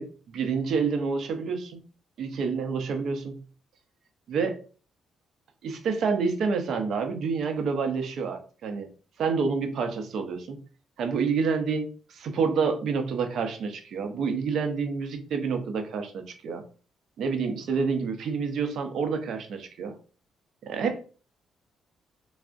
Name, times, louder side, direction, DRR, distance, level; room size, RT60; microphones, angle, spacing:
voice 1, 0.0-1.8 2.2-3.4 4.3-4.6 5.6-8.9 9.2-10.6 11.0-16.6 17.2-20.0 20.6-21.2, right 5 dB, 70° right, 6 dB, 0.6 m, -28 dB
3.5 x 2.0 x 2.5 m, 0.38 s
cardioid pair, 90°, 0 cm